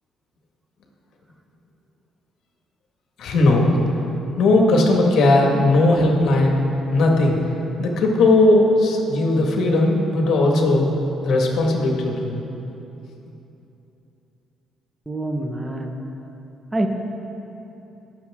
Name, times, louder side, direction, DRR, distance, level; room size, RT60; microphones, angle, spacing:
voice 1, 3.2-3.9 4.3-6.6 6.9-7.4 7.8-10.9 11.2-12.4, left 2 dB, 70° left, 1 dB, 1.8 m, -17 dB
voice 2, 15.1-16.0 16.7-16.9, right 1 dB, 15° right, 3 dB, 1.2 m, -25 dB
19.5 x 7.0 x 3.7 m, 2.9 s
cardioid pair, 80°, 0 cm